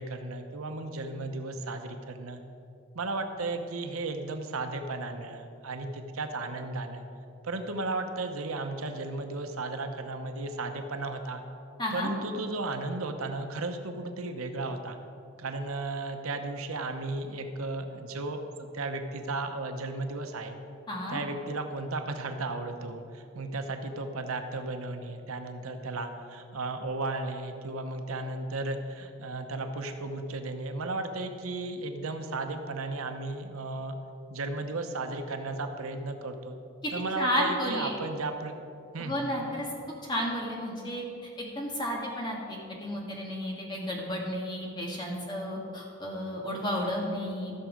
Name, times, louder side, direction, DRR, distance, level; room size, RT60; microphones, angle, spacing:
voice 1, 0.0-2.4 2.9-7.0 7.4-11.4 11.9-15.0 15.4-18.5 18.7-20.6 21.1-33.9 34.3-36.6 36.9-38.6 38.9-39.2, right 2 dB, 90° right, 6 dB, 0.8 m, -34 dB
voice 2, 11.8-12.1 20.9-21.2 37.2-37.9 39.0-39.7 40.1-47.5, equal, 20° left, -2 dB, 1.6 m, -32 dB
14.0 x 6.4 x 5.0 m, 2.7 s
head